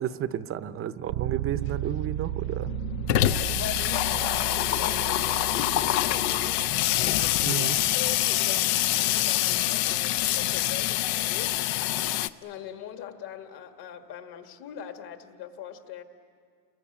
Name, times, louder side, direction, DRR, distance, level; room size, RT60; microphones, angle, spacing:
voice 1, 0.0-2.7 7.4-7.8, right 10 dB, 30° right, 12 dB, 0.6 m, -32 dB
sound 1, 1.1-10.8, right 14 dB, 70° right, 0.8 m, -36 dB
Water tap faucet / Sink (filling or washing), 1.7-1.8 2.0-2.1 2.4-12.3, left 14 dB, 75° left, 0.8 m, -25 dB
voice 2, 3.2-12.0 12.4-16.0, left 10 dB, 55° left, 6 dB, 2.0 m, -41 dB
30.0 x 22.0 x 8.8 m, 2.1 s
cardioid pair, 150°, 47 cm